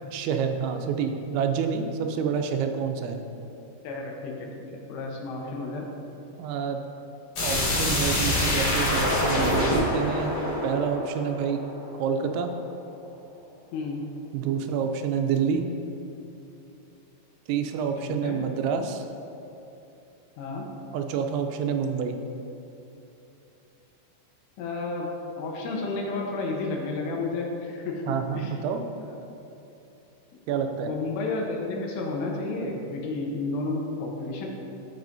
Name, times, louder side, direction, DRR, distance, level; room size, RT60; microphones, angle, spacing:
voice 1, 0.1-3.2 6.4-6.8 7.4-10.4 10.6-11.6 12.0-12.5 14.3-15.7 17.5-19.0 20.9-22.2 28.1-28.8 30.5-30.9, right 6 dB, 85° right, 5 dB, 2.9 m, -28 dB
voice 2, 3.8-5.9 13.7-14.0 18.0-18.4 20.4-20.7 24.6-28.5 29.0-29.1 30.8-34.5, left 3 dB, 80° left, 0 dB, 3.0 m, -32 dB
sound 1, 7.3-12.1, left 1 dB, 55° left, 1.9 m, -25 dB
14.5 x 5.5 x 2.6 m, 2.8 s
omnidirectional pair, 5.1 m